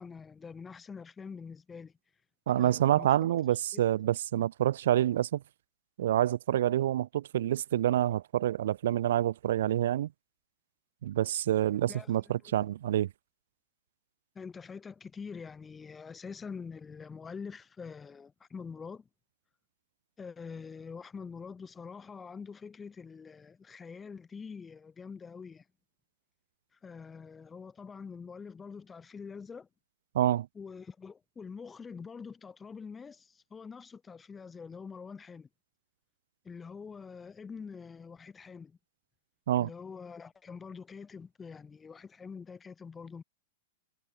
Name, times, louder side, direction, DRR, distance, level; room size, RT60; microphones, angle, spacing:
voice 1, 0.0-1.9 2.6-3.1 3.7-3.8 4.3-4.5 11.9-12.1 12.4-12.7 14.3-19.1 20.2-25.6 26.8-29.7 30.5-35.5 36.4-38.8 39.6-43.2, left 5 dB, 15° left, 6.7 m, -45 dB
voice 2, 2.5-5.4 6.0-10.1 11.0-13.1 30.1-30.5 39.5-39.7, right 12 dB, 65° right, 0.6 m, -27 dB
hypercardioid pair, 105°, 0 cm